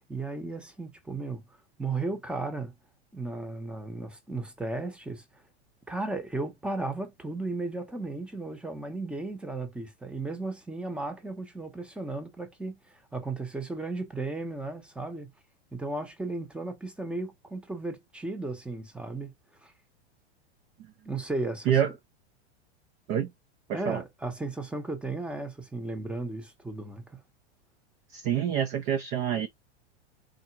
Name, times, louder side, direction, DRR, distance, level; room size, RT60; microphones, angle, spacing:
voice 1, 0.1-1.4 1.8-2.7 3.1-5.4 5.9-15.3 15.7-19.3 19.6-19.7 21.1-21.9 23.7-27.2, right 2 dB, 5° right, 0.7 m, -35 dB
voice 2, 23.7-24.0 28.1-29.5, right 9 dB, 25° right, 0.3 m, -27 dB
3.8 x 2.1 x 4.4 m
supercardioid pair, 140°, 34 cm